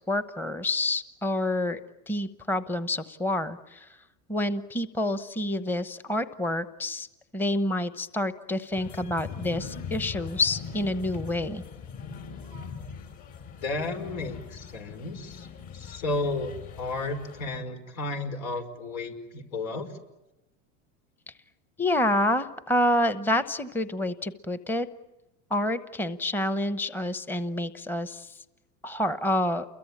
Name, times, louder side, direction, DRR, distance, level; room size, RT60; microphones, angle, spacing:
voice 1, 0.1-1.8 2.1-3.9 4.3-7.1 7.3-11.6 21.8-24.9 25.5-28.4 28.8-29.7, left 1 dB, 5° left, 12 dB, 0.9 m, -28 dB
sound 1, 8.7-17.6, left 6 dB, 50° left, 4.8 m, -41 dB
voice 2, 13.6-15.5 15.7-19.9, left 2 dB, 80° left, 5 dB, 5.4 m, -33 dB
29.5 x 22.5 x 8.7 m, 0.97 s
supercardioid pair, 120°, 42 cm